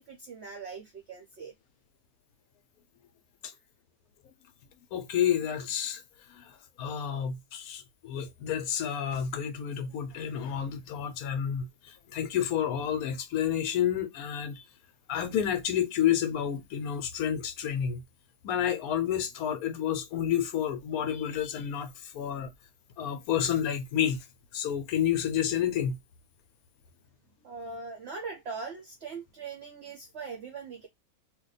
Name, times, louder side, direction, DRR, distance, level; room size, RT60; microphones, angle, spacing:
voice 1, 0.0-1.5 27.4-30.9, right 4 dB, 55° right, 0.8 m, -41 dB
voice 2, 4.9-6.0 6.3-14.6 15.1-18.0 18.4-22.5 23.0-24.2 24.5-26.0, left 9 dB, 75° left, 1.1 m, -30 dB
2.6 x 2.2 x 3.9 m
omnidirectional pair, 1.6 m